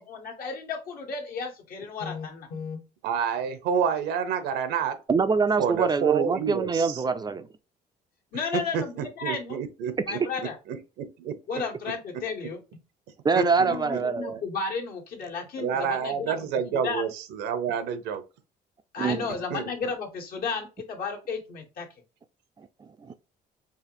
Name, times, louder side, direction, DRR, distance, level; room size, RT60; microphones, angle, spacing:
voice 1, 0.0-2.8 8.3-9.6 10.0-10.6 11.5-12.6 13.6-16.5 16.7-17.1 18.9-21.9, left 5 dB, 60° left, 1.4 m, -33 dB
voice 2, 3.0-5.0 5.6-7.0 8.5-10.2 10.7-11.4 13.3-14.0 15.6-18.2 19.5-19.9, right 7 dB, 85° right, 0.8 m, -29 dB
voice 3, 5.1-7.5 13.2-14.4 19.0-19.3 22.6-23.1, right 5 dB, 25° right, 0.4 m, -25 dB
4.8 x 2.5 x 3.0 m
cardioid pair, 110°, 17 cm